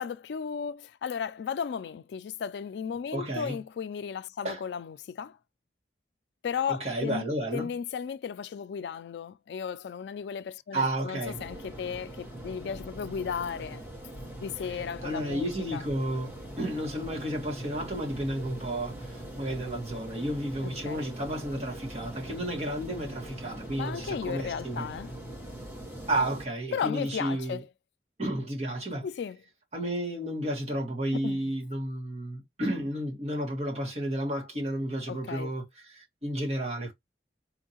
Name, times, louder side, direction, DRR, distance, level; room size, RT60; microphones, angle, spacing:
voice 1, 0.0-5.4 6.4-7.3 7.5-13.8 14.4-15.8 20.6-21.0 23.8-25.1 26.7-27.7 29.0-29.4 31.1-31.4 35.1-35.5, left 7 dB, 75° left, 0.3 m, -35 dB
voice 2, 3.1-3.6 4.4-4.6 6.7-7.7 10.7-11.4 14.7-24.9 26.1-27.6 28.2-29.1 29.7-36.9, right 1 dB, 40° right, 1.5 m, -32 dB
sound 1, 11.2-26.5, right 1 dB, 10° right, 1.3 m, -42 dB
4.4 x 2.7 x 2.8 m
head